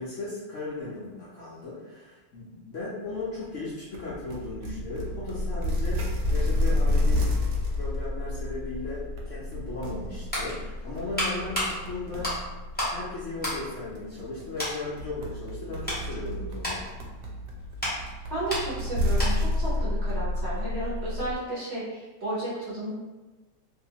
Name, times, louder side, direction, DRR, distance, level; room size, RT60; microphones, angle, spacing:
voice 1, 0.0-7.3 7.7-12.3 12.8-16.8, left 3 dB, 65° left, -7 dB, 0.8 m, -36 dB
sound 1, 3.9-21.3, left 1 dB, 75° right, 1.0 m, -30 dB
sound 2, 10.0-13.0 13.3-14.3 14.6-14.8 15.4-19.6 19.9-20.1, left 1 dB, 10° left, 0.6 m, -33 dB
voice 2, 18.3-22.9, right 2 dB, 50° right, -8 dB, 0.8 m, -33 dB
2.7 x 2.3 x 2.8 m, 1.2 s
omnidirectional pair, 1.7 m